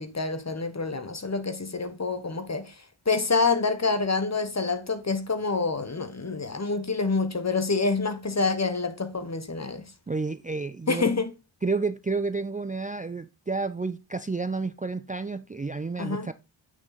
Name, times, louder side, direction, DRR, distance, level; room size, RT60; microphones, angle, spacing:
voice 1, 0.0-2.7 3.1-9.9 10.9-11.3 16.0-16.3, left 4 dB, 35° left, 1.3 m, -27 dB
voice 2, 10.1-11.1 11.6-16.3, right 4 dB, 20° right, 0.4 m, -30 dB
8.8 x 6.4 x 4.0 m
wide cardioid pair, 85°, 46 cm